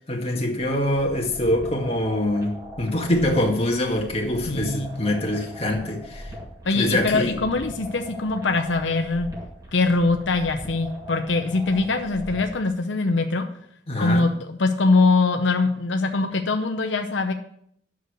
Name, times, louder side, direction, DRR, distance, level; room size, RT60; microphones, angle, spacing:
voice 1, 0.1-6.3 6.7-7.4 13.9-14.2, left 1 dB, 35° left, 1 dB, 1.9 m, -24 dB
sound 1, 0.6-12.6, equal, 20° right, 2.2 m, -40 dB
voice 2, 4.5-4.9 6.6-9.3 9.7-13.5 14.0-17.3, left 3 dB, 80° left, 5 dB, 0.8 m, -22 dB
9.5 x 6.5 x 6.5 m, 0.69 s
head